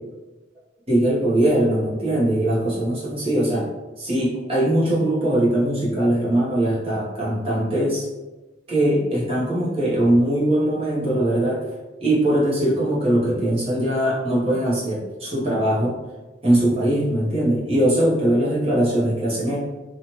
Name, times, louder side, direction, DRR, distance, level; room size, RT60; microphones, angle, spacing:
voice 1, 0.9-3.7 4.0-8.1 8.7-11.6 12.0-16.0 16.4-19.6, right 1 dB, 30° right, -6 dB, 0.9 m, -21 dB
3.0 x 2.4 x 2.8 m, 1.1 s
head